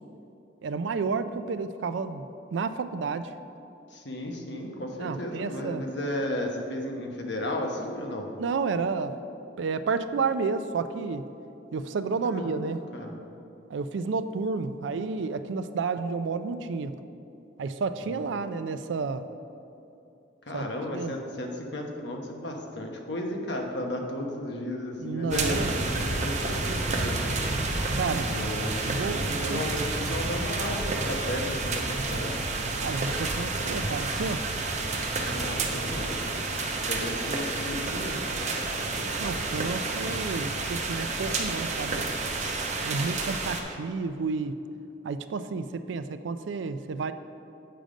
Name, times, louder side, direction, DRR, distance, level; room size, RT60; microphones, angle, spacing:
voice 1, 0.6-2.2 2.5-3.3 5.0-5.8 8.4-9.2 9.6-11.3 11.7-12.8 13.7-17.0 17.6-19.2 20.5-20.6 20.9-21.1 25.0-25.7 27.9-28.3 28.8-29.6 32.8-34.5 39.2-42.1 42.8-44.6 45.0-47.1, right 4 dB, 75° right, 11 dB, 0.4 m, -31 dB
voice 2, 3.9-8.3 12.2-13.1 18.0-18.3 20.5-27.7 28.3-32.4 35.2-36.4 36.8-39.1, left 1 dB, 65° left, 1 dB, 1.0 m, -34 dB
sound 1, 25.3-43.6, right 3 dB, 40° right, 0.7 m, -30 dB
7.8 x 5.0 x 5.1 m, 2.7 s
head